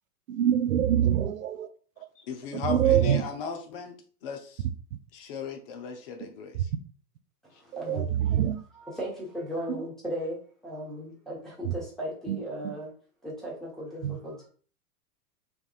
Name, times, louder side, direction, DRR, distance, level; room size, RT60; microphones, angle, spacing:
voice 1, 0.3-1.7 2.5-3.2 7.7-8.6 9.7-9.8 11.7-11.8 12.3-12.4 14.0-14.2, right 10 dB, 60° right, 0.5 m, -25 dB
voice 2, 2.2-3.9 4.2-4.6 5.1-6.6, left 6 dB, 40° left, 0.6 m, -36 dB
voice 3, 7.4-8.1 8.7-10.4 10.6-12.9 13.2-14.5, equal, ahead, 1.0 m, -36 dB
3.5 x 2.3 x 2.3 m
figure-of-eight pair, 100°, 47 cm